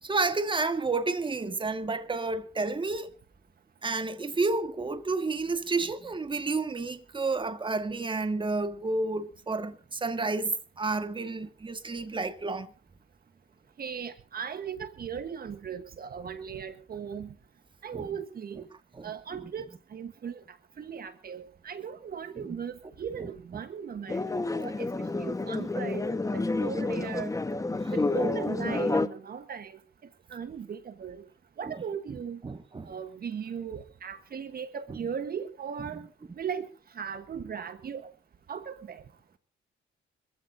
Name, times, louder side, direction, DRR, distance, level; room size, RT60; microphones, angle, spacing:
voice 1, 0.0-3.1 3.8-12.7 17.9-18.1 19.0-19.4 22.5-22.6 23.2-23.3 27.8-27.9 31.7-31.8 32.4-32.9, right 3 dB, 25° right, 1.8 m, -31 dB
voice 2, 13.8-17.3 17.8-18.7 19.0-24.2 24.5-26.1 26.3-27.3 27.9-29.8 30.3-31.2 31.6-32.4 32.8-36.1 36.4-36.7 36.9-38.1 38.5-39.0, right 7 dB, 50° right, 1.4 m, -37 dB
sound 1, 24.1-29.1, left 2 dB, 15° left, 1.3 m, -29 dB
26.0 x 15.0 x 2.7 m
cardioid pair, 90°, 20 cm